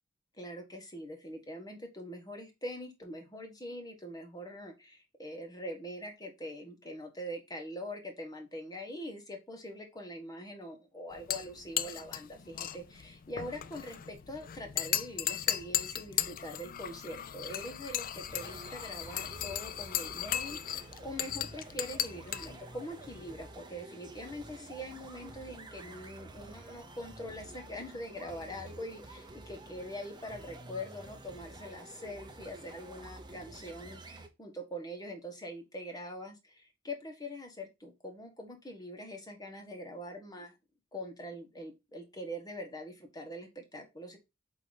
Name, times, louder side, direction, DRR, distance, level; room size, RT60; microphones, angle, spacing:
voice 1, 0.4-40.5 40.9-44.2, equal, 20° left, 3 dB, 1.4 m, -43 dB
sound 1, 11.1-23.5, left 11 dB, 45° left, 0.4 m, -37 dB
sound 2, 18.3-34.3, right 2 dB, 25° right, 0.9 m, -50 dB
8.3 x 3.1 x 4.0 m, 0.24 s
head